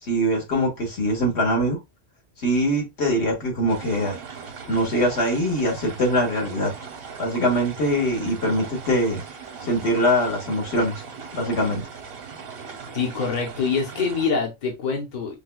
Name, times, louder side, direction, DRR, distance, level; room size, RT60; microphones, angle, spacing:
voice 1, 0.0-1.8 2.4-4.1 4.7-6.7 7.2-9.2 9.6-11.0 11.4-11.8, equal, 75° left, 1.5 m, -23 dB
sound 1, 3.7-14.3, right 5 dB, 65° right, 1.0 m, -39 dB
voice 2, 12.9-15.4, left 5 dB, 45° left, 0.9 m, -25 dB
4.9 x 2.2 x 2.3 m
omnidirectional pair, 1.1 m